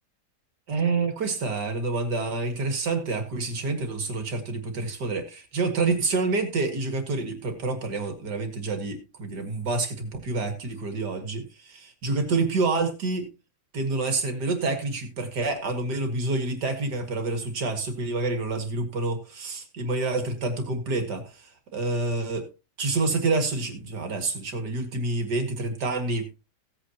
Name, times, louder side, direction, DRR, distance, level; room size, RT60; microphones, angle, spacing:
voice 1, 0.7-13.3 13.7-22.5 22.8-26.3, right 3 dB, 70° right, 6 dB, 2.6 m, -28 dB
16.5 x 8.4 x 2.9 m, 0.29 s
omnidirectional pair, 1.9 m